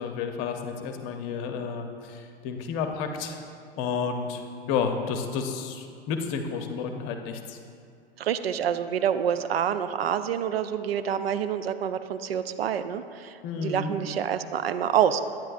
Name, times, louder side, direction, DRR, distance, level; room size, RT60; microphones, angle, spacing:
voice 1, 0.0-3.4 3.8-4.4 4.7-7.6 13.4-14.0, left 6 dB, 45° left, 5 dB, 0.8 m, -31 dB
voice 2, 8.2-15.2, right 9 dB, 75° right, 11 dB, 0.5 m, -27 dB
9.8 x 9.1 x 2.5 m, 2.3 s
figure-of-eight pair, 95°, 30 cm